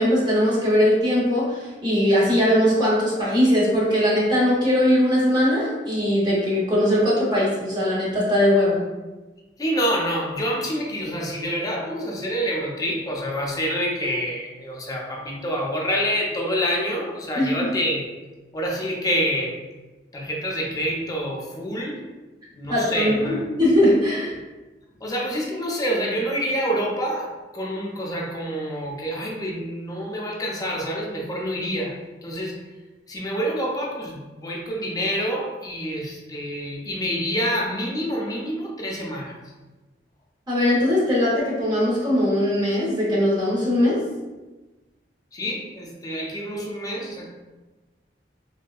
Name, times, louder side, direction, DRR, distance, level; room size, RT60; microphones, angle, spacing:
voice 1, 0.0-8.8 17.4-17.7 22.7-24.3 40.5-44.0, left 1 dB, 25° right, -6 dB, 0.7 m, -20 dB
voice 2, 9.6-18.0 18.5-19.6 20.1-22.1 22.5-23.4 25.0-32.6 33.1-39.4 45.3-47.3, equal, 20° left, -1 dB, 0.5 m, -27 dB
3.2 x 2.6 x 2.3 m, 1.2 s
head